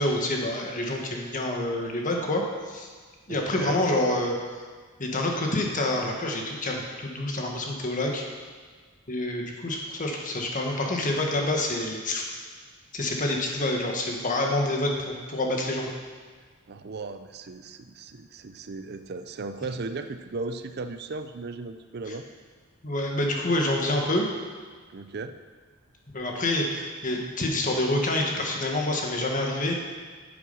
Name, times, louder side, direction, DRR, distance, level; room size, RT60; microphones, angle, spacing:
voice 1, 0.0-2.9 3.3-4.4 5.0-8.2 9.1-12.2 12.9-15.9 22.1-22.2 22.8-24.3 26.1-29.8, left 1 dB, 40° left, 1 dB, 1.6 m, -27 dB
voice 2, 3.3-3.8 16.7-22.3 24.9-25.4, right 3 dB, 50° right, 9 dB, 0.5 m, -36 dB
9.6 x 8.6 x 5.5 m, 1.5 s
head